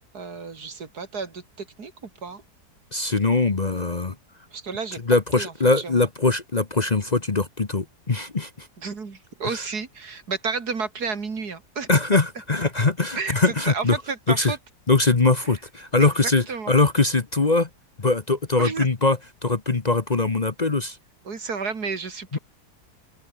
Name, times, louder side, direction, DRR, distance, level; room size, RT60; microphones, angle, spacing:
voice 1, 0.1-2.4 4.5-5.0 5.3-6.1 8.8-11.9 13.2-14.6 16.0-16.1 16.5-16.7 18.6-18.9 21.2-22.4, right 5 dB, 75° right, 3.1 m, -31 dB
voice 2, 2.9-4.2 5.1-8.7 9.5-9.6 11.9-14.0 14.3-14.5 14.9-17.7 18.0-21.0 22.3-22.4, left 3 dB, 30° left, 1.1 m, -22 dB
open air
omnidirectional pair, 1.7 m